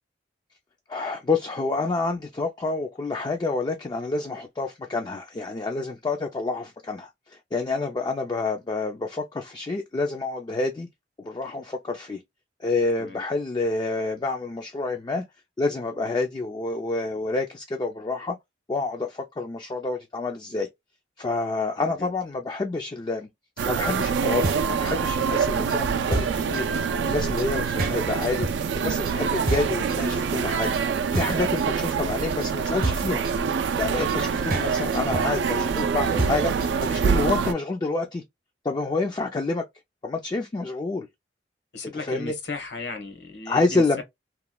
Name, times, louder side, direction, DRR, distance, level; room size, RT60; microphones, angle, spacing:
voice 1, 0.9-10.9 11.2-12.2 12.6-15.2 15.6-18.4 18.7-20.7 21.2-23.3 23.6-26.7 27.0-28.5 28.8-33.3 33.8-38.2 38.6-39.7 40.0-41.1 42.0-42.3 43.5-44.0, left 3 dB, 25° left, 0.3 m, -28 dB
voice 2, 21.8-22.1 34.2-34.5 35.2-35.4 41.7-44.0, left 3 dB, 70° left, 1.0 m, -36 dB
sound 1, 23.6-37.0, right 2 dB, 55° right, 0.8 m, -31 dB
sound 2, 23.6-37.5, right 6 dB, 80° right, 0.4 m, -25 dB
3.0 x 2.1 x 2.2 m
head